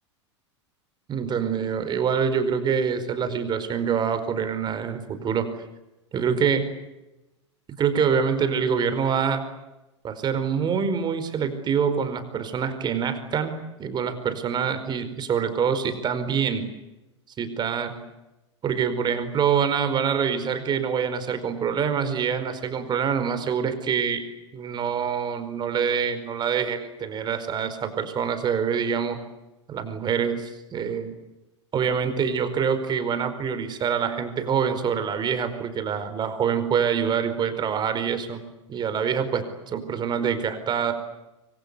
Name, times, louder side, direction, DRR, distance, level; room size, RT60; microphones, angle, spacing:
voice 1, 1.1-5.5 6.1-6.6 7.8-9.4 10.0-13.5 13.8-16.7 17.4-17.9 18.6-24.2 24.5-29.2 29.7-31.1 31.7-38.4 38.7-40.9, right 7 dB, 30° right, 10 dB, 4.8 m, -25 dB
25.5 x 25.5 x 8.3 m, 0.99 s
figure-of-eight pair, 90°, 15 cm